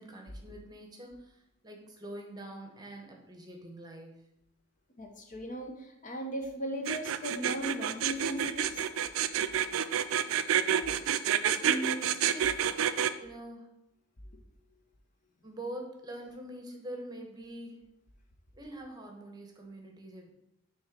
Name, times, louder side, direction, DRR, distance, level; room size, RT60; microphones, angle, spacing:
voice 1, 0.0-4.3 11.6-12.7 13.2-13.7 15.4-17.8 18.5-20.3, right 1 dB, 20° right, 2 dB, 0.9 m, -43 dB
voice 2, 5.0-8.9, equal, 40° left, 3 dB, 0.7 m, -37 dB
sound 1, 6.8-13.1, right 9 dB, 85° right, 0.4 m, -28 dB
6.2 x 3.2 x 5.1 m, 0.82 s
head